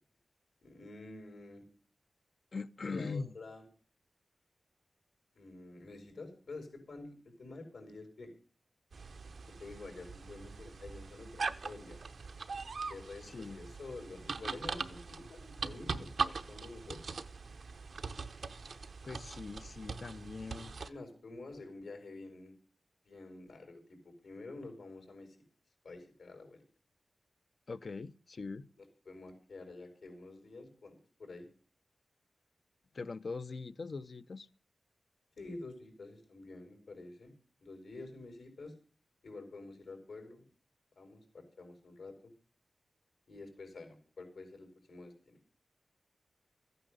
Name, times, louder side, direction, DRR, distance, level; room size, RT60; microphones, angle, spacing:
voice 1, 0.6-1.6 2.8-3.7 5.4-8.3 9.6-12.0 12.9-17.2 20.8-22.5 23.0-25.4 25.8-26.6 28.8-31.5 35.4-37.3 37.6-38.7 39.2-40.4 41.0-42.3 43.3-45.4, left 3 dB, 85° left, 5.5 m, -49 dB
voice 2, 2.5-3.3 13.2-13.6 19.0-20.7 27.7-28.7 32.9-34.5, left 4 dB, 55° left, 0.7 m, -41 dB
sound 1, 8.9-20.9, right 4 dB, 70° right, 0.9 m, -41 dB
14.5 x 9.4 x 6.7 m
wide cardioid pair, 90°, 0 cm